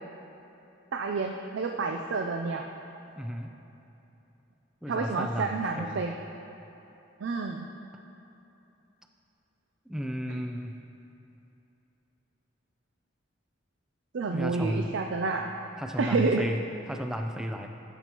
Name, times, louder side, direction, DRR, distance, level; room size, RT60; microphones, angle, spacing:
voice 1, 0.9-2.7 4.9-6.2 7.2-7.7 14.1-15.5 16.0-16.4, right 4 dB, 65° right, 3 dB, 0.4 m, -29 dB
voice 2, 3.2-3.5 4.8-6.0 9.9-10.8 14.3-14.9 15.8-17.7, equal, 5° right, 4 dB, 0.4 m, -33 dB
13.0 x 7.0 x 2.9 m, 2.9 s
head